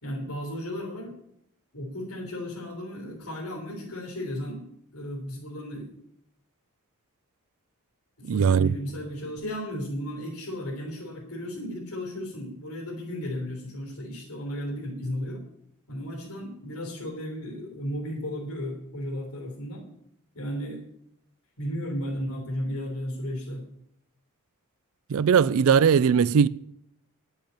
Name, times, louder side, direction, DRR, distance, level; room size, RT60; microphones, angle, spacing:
voice 1, 0.0-1.2 1.7-4.6 4.9-5.9 8.2-15.4 15.9-19.9 20.3-20.8 21.6-23.6, equal, 85° left, 3.7 m, -34 dB
voice 2, 8.3-8.7 25.1-26.5, right 7 dB, 65° right, 0.4 m, -19 dB
10.5 x 7.9 x 8.8 m
head